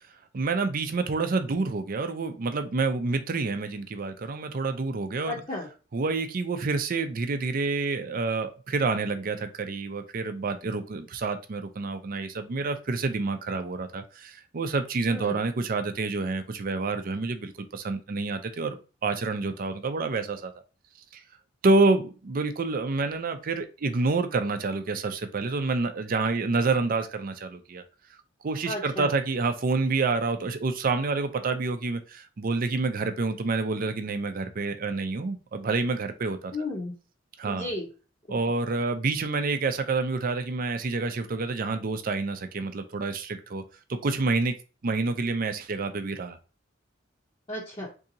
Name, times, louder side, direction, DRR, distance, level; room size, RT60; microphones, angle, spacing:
voice 1, 0.3-5.3 5.9-20.5 21.1-21.2 21.6-27.8 28.4-36.5 37.4-37.7 38.3-43.6 43.9-44.5 44.8-46.4, right 3 dB, 50° right, 8 dB, 0.5 m, -28 dB
voice 2, 5.3-5.7 15.1-15.4 28.7-29.1 36.5-36.9 37.4-37.9 38.3-38.4 47.5-47.9, left 2 dB, 30° left, -5 dB, 0.8 m, -33 dB
3.7 x 2.7 x 2.7 m, 0.34 s
head